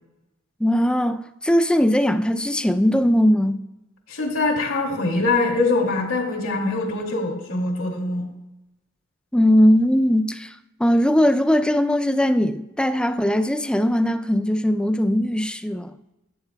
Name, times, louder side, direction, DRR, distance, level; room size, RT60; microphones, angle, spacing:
voice 1, 0.6-3.6 9.3-10.5 10.8-16.0, equal, 5° left, 0.4 m, -19 dB
voice 2, 4.1-8.3, left 3 dB, 85° left, 2.4 m, -23 dB
17.0 x 8.8 x 2.3 m
head